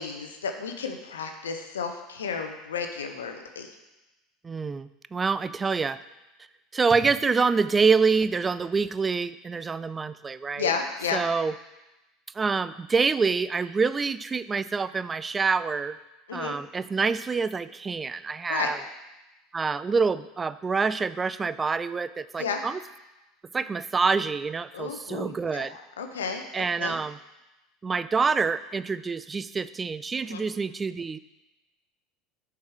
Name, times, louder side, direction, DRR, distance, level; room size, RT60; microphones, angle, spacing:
voice 1, 0.0-3.7 10.6-11.2 16.3-16.6 18.5-18.7 22.4-22.6 24.7-27.0 30.3-30.4, left 6 dB, 80° left, 5 dB, 0.6 m, -32 dB
voice 2, 4.4-6.0 6.7-10.7 11.1-11.5 12.4-16.0 16.3-18.8 19.5-22.8 23.5-25.7 26.5-27.2 27.8-31.2, right 5 dB, 25° right, 15 dB, 0.3 m, -26 dB
6.8 x 4.7 x 4.9 m, 1.0 s
hypercardioid pair, 75°, 0 cm